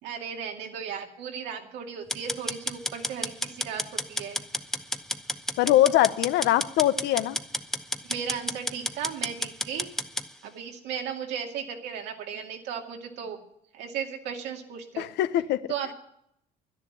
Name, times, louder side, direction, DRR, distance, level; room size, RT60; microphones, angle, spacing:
voice 1, 0.0-4.4 8.0-9.9 10.4-13.4 13.7-15.1 15.7-15.9, right 7 dB, 90° right, 2 dB, 2.3 m, -36 dB
sound 1, 2.1-10.3, left 1 dB, 5° left, 0.7 m, -31 dB
voice 2, 5.6-7.4 15.0-15.6, left 13 dB, 85° left, 14 dB, 0.7 m, -22 dB
11.5 x 10.5 x 9.9 m, 0.74 s
cardioid pair, 110°, 17 cm